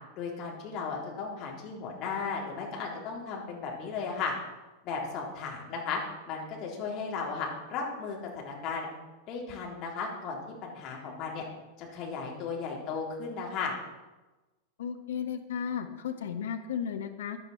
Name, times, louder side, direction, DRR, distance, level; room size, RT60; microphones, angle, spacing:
voice 1, 0.2-4.3 4.8-6.0 6.3-8.9 9.3-11.4 11.8-13.8, left 5 dB, 35° left, -2 dB, 3.8 m, -35 dB
voice 2, 14.8-17.4, left 7 dB, 60° left, 7 dB, 1.0 m, -34 dB
15.0 x 9.9 x 4.4 m, 1.1 s
figure-of-eight pair, 90°, 0 cm